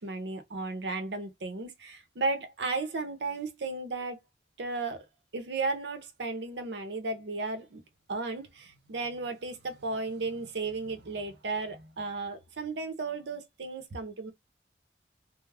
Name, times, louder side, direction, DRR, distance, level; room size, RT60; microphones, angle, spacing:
voice 1, 0.0-4.2 4.6-5.0 5.3-7.8 8.1-14.3, right 3 dB, 85° right, 0.7 m, -34 dB
2.3 x 2.0 x 3.2 m
head